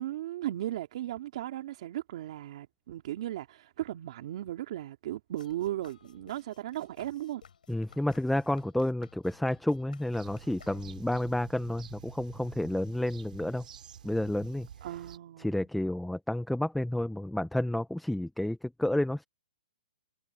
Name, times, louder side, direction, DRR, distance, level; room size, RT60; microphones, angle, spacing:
voice 1, 0.0-7.4 14.8-15.7, right 13 dB, 50° right, 2.8 m, -36 dB
sound 1, 5.4-11.2, left 7 dB, 80° left, 6.4 m, -57 dB
voice 2, 7.7-13.6 14.0-14.7 15.4-19.2, left 1 dB, ahead, 0.7 m, -30 dB
sound 2, 10.1-15.2, right 8 dB, 70° right, 5.5 m, -50 dB
hypercardioid pair, 160°, 4 cm